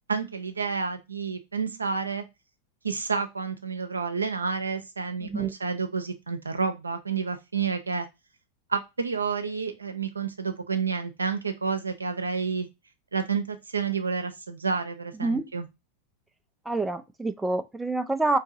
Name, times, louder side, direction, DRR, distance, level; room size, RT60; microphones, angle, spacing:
voice 1, 0.1-2.2 2.8-8.1 8.7-12.7 13.1-15.7, right 5 dB, 75° right, 0.6 m, -30 dB
voice 2, 5.2-5.5 15.2-15.5 16.7-18.4, right 2 dB, 5° right, 0.3 m, -27 dB
4.5 x 2.7 x 2.5 m
figure-of-eight pair, 90°, 0 cm